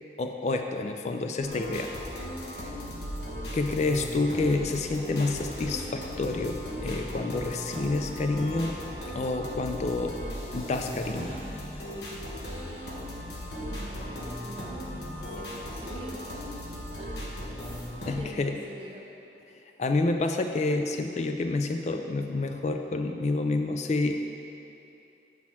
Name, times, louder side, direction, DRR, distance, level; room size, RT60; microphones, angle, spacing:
voice 1, 0.2-1.9 2.6-2.7 3.5-8.8 9.1-10.2 10.5-11.4 18.1-18.5 19.8-24.2, left 2 dB, 40° left, 5 dB, 0.3 m, -28 dB
sound 1, 1.4-18.1, equal, 70° left, 1.1 m, -37 dB
voice 2, 13.7-16.3 17.0-17.3 18.1-19.1, right 1 dB, 30° right, -4 dB, 0.5 m, -45 dB
7.3 x 6.1 x 4.4 m, 2.8 s
head